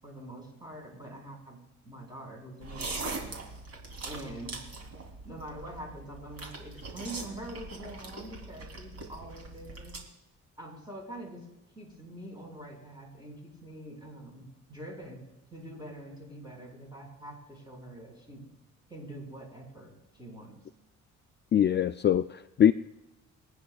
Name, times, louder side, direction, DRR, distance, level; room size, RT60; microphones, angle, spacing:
voice 1, 0.0-3.3 4.0-4.6 5.2-10.0 10.6-11.5 11.8-15.2 15.5-18.5 18.9-20.6, right 1 dB, 15° right, -1 dB, 5.7 m, -45 dB
sound 1, 2.6-10.0, right 3 dB, 55° right, 3.5 m, -41 dB
voice 2, 21.5-22.7, left 9 dB, 35° left, 11 dB, 0.4 m, -23 dB
26.0 x 9.6 x 2.4 m, 0.93 s
cardioid pair, 90°, 30 cm